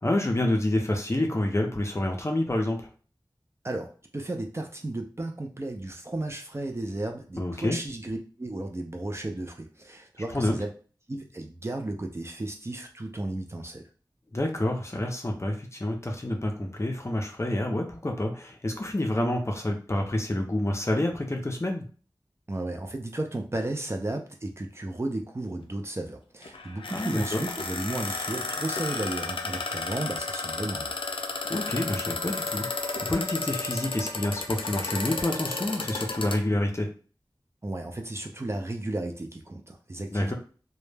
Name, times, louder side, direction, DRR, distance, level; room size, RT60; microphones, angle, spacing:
voice 1, 0.0-2.8 7.4-7.8 10.3-10.5 14.3-21.8 26.9-27.4 31.5-36.9 40.1-40.3, left 1 dB, 30° left, 2 dB, 0.5 m, -28 dB
voice 2, 3.6-10.7 11.1-13.9 22.5-30.9 37.6-40.3, right 2 dB, 30° right, 3 dB, 0.4 m, -34 dB
sound 1, 26.4-36.4, left 3 dB, 85° left, 0.3 m, -33 dB
2.1 x 2.0 x 3.2 m, 0.39 s
wide cardioid pair, 60°, 9 cm